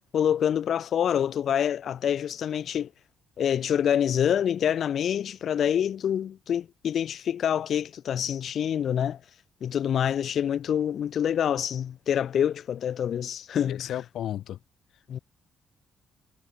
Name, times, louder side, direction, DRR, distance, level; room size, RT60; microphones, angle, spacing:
voice 1, 0.1-2.9 3.4-9.2 9.6-13.9 15.1-15.2, left 9 dB, 55° left, 0.4 m, -26 dB
voice 2, 13.7-14.6, left 11 dB, 70° left, 1.6 m, -33 dB
cardioid pair, 135°, 0 cm